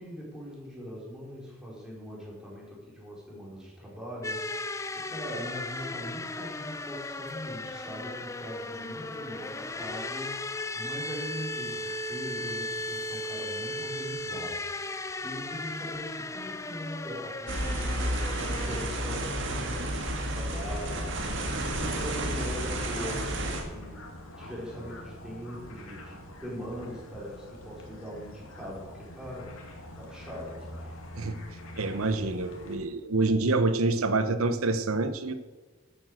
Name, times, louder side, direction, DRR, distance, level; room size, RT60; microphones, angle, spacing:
voice 1, 0.0-14.6 14.9-24.0 24.4-31.0, equal, 5° right, -4 dB, 4.3 m, -41 dB
sound 1, 4.2-18.8, left 2 dB, 15° left, 0.4 m, -36 dB
sound 2, 17.5-23.6, right 1 dB, 55° right, 2.0 m, -31 dB
sound 3, 20.5-32.8, left 1 dB, 75° left, 2.5 m, -45 dB
voice 2, 31.8-35.3, right 3 dB, 80° right, 12 dB, 0.9 m, -27 dB
12.5 x 8.5 x 6.4 m, 1.3 s
head